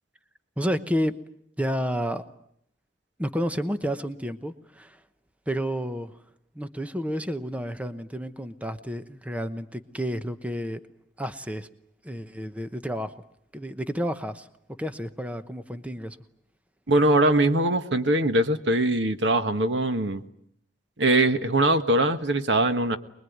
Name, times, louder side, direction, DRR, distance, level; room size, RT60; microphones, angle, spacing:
voice 1, 0.6-1.2 1.6-2.2 3.2-5.0 5.5-6.2 6.5-10.8 11.2-11.7 12.0-13.2 13.5-14.5 14.8-16.2, equal, 10° right, 10 dB, 1.0 m, -30 dB
voice 2, 16.9-20.2 21.0-23.0, right 1 dB, 85° right, 9 dB, 1.5 m, -22 dB
24.5 x 21.5 x 9.5 m, 0.71 s
head